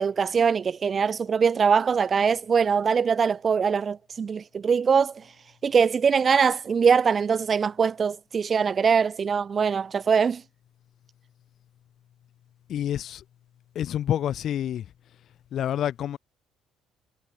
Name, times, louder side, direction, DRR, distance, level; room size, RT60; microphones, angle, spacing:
voice 1, 0.0-5.2 5.6-10.4, right 6 dB, 40° right, 1.1 m, -22 dB
voice 2, 12.7-13.2 13.7-14.8 15.5-16.2, left 10 dB, 60° left, 2.7 m, -28 dB
cardioid pair, 90°, 0 cm